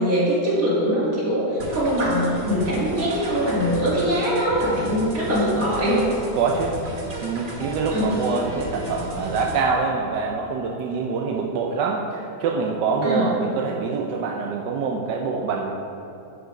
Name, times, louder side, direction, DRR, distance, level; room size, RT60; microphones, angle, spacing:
voice 1, 0.0-1.5 1.7-6.1 7.9-8.1 13.0-13.3, equal, 55° right, -6 dB, 2.7 m, -22 dB
sound 1, 1.6-9.6, equal, 35° right, 1.0 m, -35 dB
voice 2, 6.2-15.7, right 4 dB, 90° right, 0 dB, 1.3 m, -25 dB
10.0 x 5.2 x 5.1 m, 2.7 s
omnidirectional pair, 1.8 m